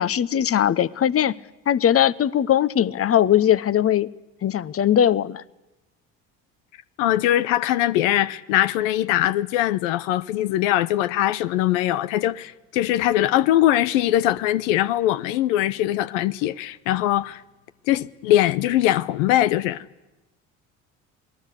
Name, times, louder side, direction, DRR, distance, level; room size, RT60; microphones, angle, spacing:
voice 1, 0.0-1.3 1.7-4.1 4.4-5.4, left 10 dB, 40° left, 0.9 m, -20 dB
voice 2, 7.0-17.4 17.9-19.8, left 13 dB, 85° left, 0.8 m, -21 dB
27.5 x 19.0 x 8.4 m
hypercardioid pair, 65°, 37 cm